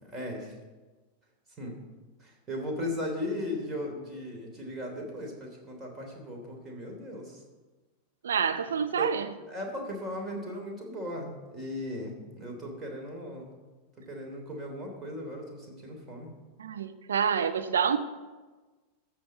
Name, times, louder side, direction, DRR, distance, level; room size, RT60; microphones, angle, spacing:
voice 1, 0.0-0.5 1.6-1.8 2.2-7.4 8.9-9.2 9.5-13.5 14.0-16.3, left 1 dB, 20° right, 1 dB, 3.2 m, -37 dB
voice 2, 8.2-9.3 16.6-18.0, right 7 dB, 65° right, 9 dB, 0.6 m, -27 dB
14.0 x 5.0 x 8.0 m, 1.3 s
figure-of-eight pair, 90°, 0 cm